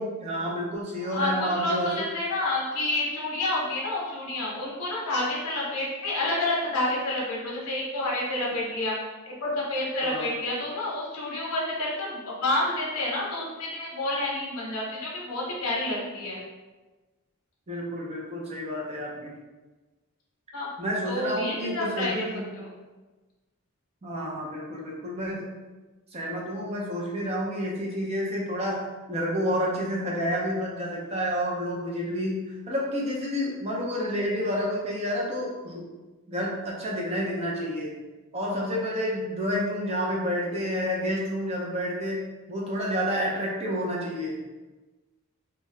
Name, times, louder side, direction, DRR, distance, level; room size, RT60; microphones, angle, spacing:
voice 1, 0.0-1.9 10.0-10.3 17.7-19.3 20.8-22.5 24.0-25.5 26.1-35.8 36.3-37.9 38.3-44.4, equal, 30° right, -3 dB, 0.6 m, -29 dB
voice 2, 1.0-8.9 9.2-16.4 20.5-20.7 21.1-22.3 22.5-22.7, left 2 dB, 80° left, -4 dB, 0.7 m, -29 dB
2.7 x 2.3 x 3.2 m, 1.2 s
head